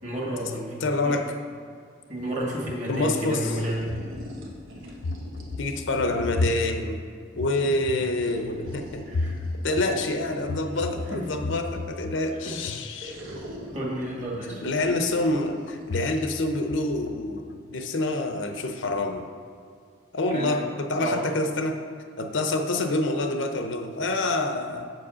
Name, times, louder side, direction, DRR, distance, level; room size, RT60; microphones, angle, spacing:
voice 1, 0.0-0.8 1.0-1.2 2.1-3.8 7.7-7.8 9.1-9.3 11.1-11.3 12.3-12.7 13.7-14.6 20.3-20.6 21.0-21.3, right 1 dB, 40° right, -3 dB, 1.8 m, -31 dB
voice 2, 0.8-1.3 2.9-3.5 5.6-7.0 7.3-9.0 9.6-13.2 14.5-19.3 20.1-21.8 22.2-24.9, left 2 dB, 75° left, 5 dB, 0.7 m, -27 dB
sound 1, 2.2-3.4 3.8-4.6 5.0-12.2 12.5-13.0 15.7-16.4 16.7-17.7 20.7-21.0 21.3-21.4, left 2 dB, 50° left, 0.3 m, -34 dB
sound 2, 3.4-6.8 8.2-12.0 13.0-15.9, equal, 90° right, 1.3 m, -42 dB
7.6 x 4.8 x 6.2 m, 2.1 s
head